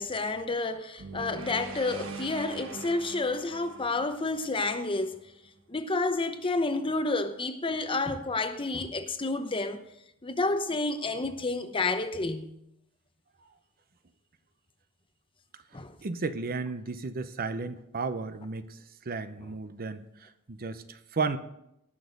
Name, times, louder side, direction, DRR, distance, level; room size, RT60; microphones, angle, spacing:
voice 1, 0.0-5.2 5.7-9.8 10.2-12.5 15.7-16.0, left 3 dB, 25° left, 0.8 m, -30 dB
sound 1, 1.0-5.2, right 4 dB, 60° right, 1.4 m, -42 dB
voice 2, 16.0-18.8 19.1-21.4, right 4 dB, 40° right, 0.7 m, -34 dB
18.5 x 6.3 x 5.2 m
head